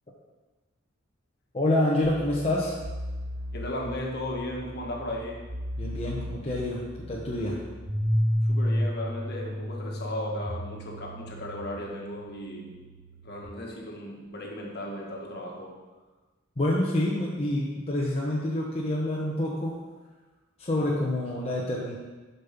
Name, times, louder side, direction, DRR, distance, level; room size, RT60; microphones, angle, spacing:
voice 1, 1.5-2.8 5.8-7.6 16.6-19.8 20.6-22.0, left 1 dB, 30° left, -4 dB, 0.9 m, -27 dB
sound 1, 2.0-13.5, equal, 80° right, 2.0 m, -33 dB
voice 2, 3.5-5.4 8.4-12.8 13.2-15.7, left 1 dB, 55° left, -1 dB, 1.6 m, -36 dB
7.0 x 5.5 x 5.9 m, 1.3 s
head